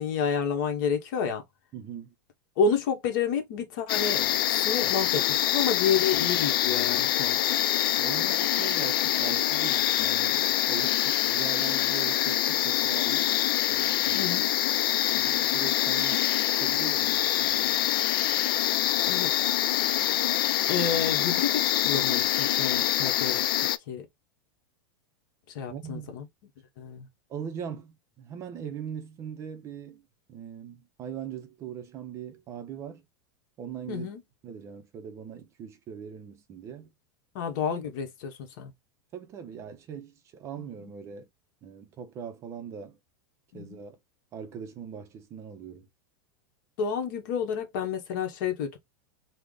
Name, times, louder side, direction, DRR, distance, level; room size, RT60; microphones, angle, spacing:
voice 1, 0.0-1.4 2.6-4.3 4.6-7.6 14.1-14.6 19.1-19.3 20.7-23.4 23.9-24.1 25.5-26.3 26.8-27.1 33.9-34.2 37.3-38.7 40.6-40.9 43.5-43.8 46.8-48.8, left 6 dB, 60° left, 1.0 m, -30 dB
voice 2, 1.7-2.1 8.0-13.3 13.7-14.3 15.1-16.2 16.5-17.8 25.7-26.1 27.3-30.0 30.3-33.0 33.6-34.1 34.4-36.9 39.1-41.3 41.6-43.0 43.5-44.0 44.3-45.9, right 8 dB, 25° right, 0.5 m, -40 dB
sound 1, 3.9-23.8, left 12 dB, 85° left, 0.4 m, -25 dB
3.2 x 2.1 x 3.7 m
supercardioid pair, 160°, 12 cm